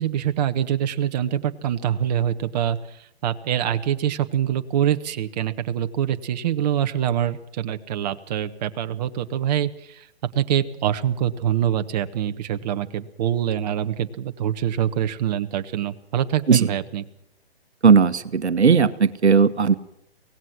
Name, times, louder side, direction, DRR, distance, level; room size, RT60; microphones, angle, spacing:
voice 1, 0.0-2.8 3.2-10.0 10.3-17.0, right 10 dB, 40° right, 8 dB, 1.3 m, -24 dB
voice 2, 17.8-19.7, right 6 dB, 85° right, 13 dB, 1.3 m, -17 dB
25.0 x 18.0 x 6.2 m, 0.73 s
hypercardioid pair, 145°, 32 cm